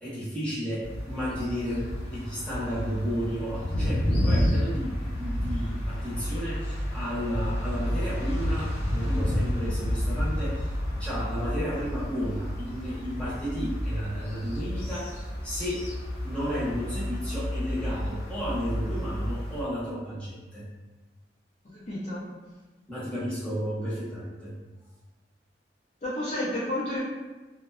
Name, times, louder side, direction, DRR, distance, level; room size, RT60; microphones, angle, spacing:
voice 1, 0.0-10.7 11.0-15.9 16.2-20.7 22.9-24.5, equal, 5° left, -11 dB, 0.8 m, -33 dB
sound 1, 0.8-19.6, equal, 65° left, 0.8 m, -30 dB
voice 2, 21.7-22.2 26.0-27.0, left 1 dB, 40° left, -9 dB, 0.5 m, -31 dB
2.5 x 2.2 x 2.2 m, 1.2 s
head